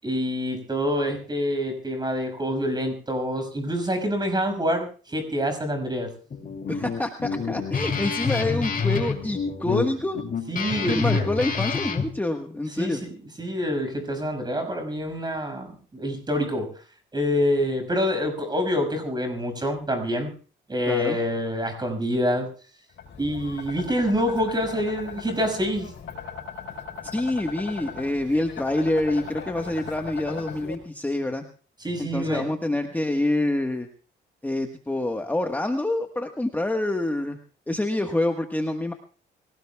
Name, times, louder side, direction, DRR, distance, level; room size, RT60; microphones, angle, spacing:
voice 1, 0.0-6.1 10.5-11.3 12.8-13.0 13.4-16.7 17.1-20.3 20.7-22.5 23.2-25.9 31.8-32.5, equal, 20° right, 7 dB, 6.0 m, -26 dB
Guitar, 6.3-12.1, left 5 dB, 45° left, 2.6 m, -28 dB
voice 2, 6.7-10.2 10.9-13.0 20.9-21.2 27.0-31.4 32.0-33.9 34.4-37.4 37.7-38.9, left 1 dB, 10° left, 5 dB, 1.4 m, -26 dB
sound 1, 22.9-30.7, left 6 dB, 65° left, 4.1 m, -38 dB
25.0 x 17.5 x 2.3 m, 0.39 s
cardioid pair, 90°, 20 cm